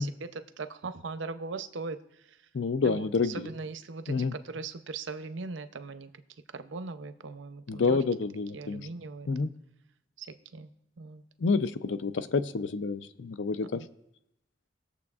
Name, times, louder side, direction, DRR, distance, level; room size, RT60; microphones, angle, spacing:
voice 1, 0.0-2.0 2.3-2.4 2.8-4.2 4.4-6.1 6.5-8.0 8.5-9.5 10.2-10.3 10.5-10.7 11.0-11.2 13.7-13.9, right 4 dB, 80° right, 11 dB, 0.6 m, -39 dB
voice 2, 2.5-3.5 4.1-4.4 7.7-8.8 9.3-9.5 11.4-13.8, left 4 dB, 75° left, 13 dB, 0.5 m, -28 dB
20.0 x 7.1 x 2.4 m, 0.84 s
head